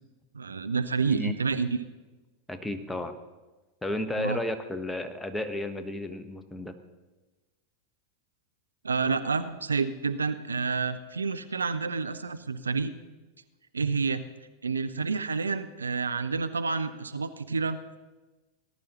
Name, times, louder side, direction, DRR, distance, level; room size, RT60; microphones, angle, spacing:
voice 1, 0.3-1.9 4.2-4.4 8.8-12.9 13.7-14.2 14.6-18.0, right 4 dB, 85° right, 12 dB, 0.5 m, -29 dB
voice 2, 2.5-3.2 3.8-6.7, left 1 dB, 5° left, 8 dB, 1.1 m, -33 dB
19.0 x 11.0 x 3.0 m, 1.2 s
figure-of-eight pair, 90°, 0 cm